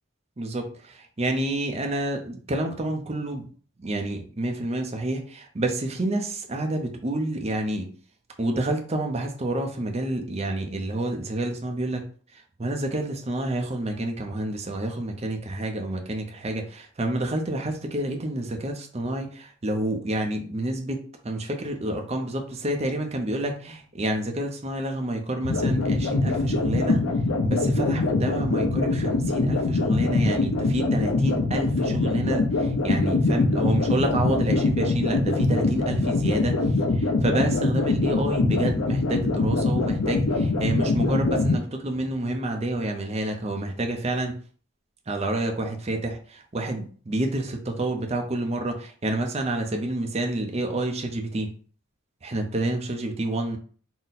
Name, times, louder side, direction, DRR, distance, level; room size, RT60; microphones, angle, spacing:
voice 1, 0.4-3.5 3.8-7.9 8.4-12.0 12.3-27.0 27.4-36.6 36.9-44.4 45.1-51.5 52.2-53.6, right 1 dB, 30° right, 3 dB, 0.5 m, -29 dB
sound 1, 25.4-41.6, left 3 dB, 85° left, 0.6 m, -23 dB
3.9 x 2.1 x 4.0 m, 0.43 s
head